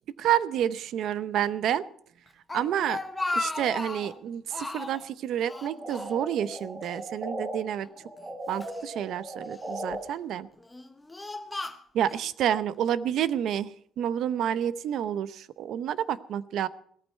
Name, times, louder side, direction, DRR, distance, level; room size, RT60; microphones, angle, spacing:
voice 1, 0.2-1.8 2.5-3.0 3.3-7.9 8.5-10.5 11.9-13.7 14.0-16.7, right 10 dB, 55° right, 16 dB, 0.7 m, -29 dB
Speech, 2.3-4.2 4.5-5.1 5.5-6.6 6.8-7.0 7.8-8.8 9.5-9.9 10.6-12.3, left 2 dB, 10° left, 0.9 m, -35 dB
sound 1, 5.5-7.6 7.9-10.0, right 1 dB, 30° right, 4.7 m, -38 dB
17.5 x 13.5 x 4.4 m, 0.62 s
cardioid pair, 170°, 0 cm